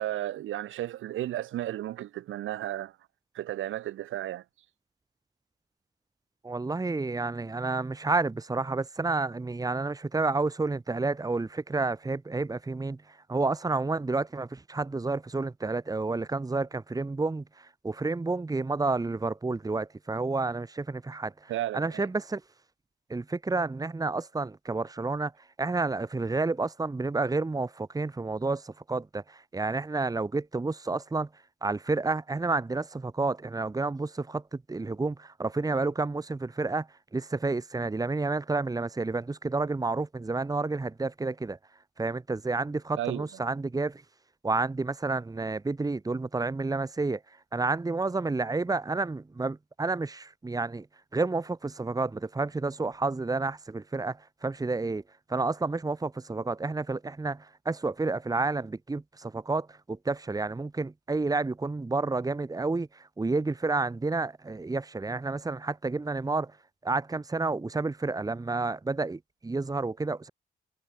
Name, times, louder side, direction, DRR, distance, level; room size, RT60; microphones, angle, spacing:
voice 1, 0.0-2.9 3.3-4.4 21.5-22.1 43.0-43.3, right 13 dB, 80° right, 2.5 m, -33 dB
voice 2, 6.4-22.4 23.1-25.3 25.6-31.3 31.6-36.9 37.1-41.6 42.0-44.0 44.4-47.2 47.5-50.9 51.1-55.0 55.3-66.5 66.8-70.3, right 3 dB, 20° right, 1.8 m, -30 dB
cardioid pair, 90°, 20 cm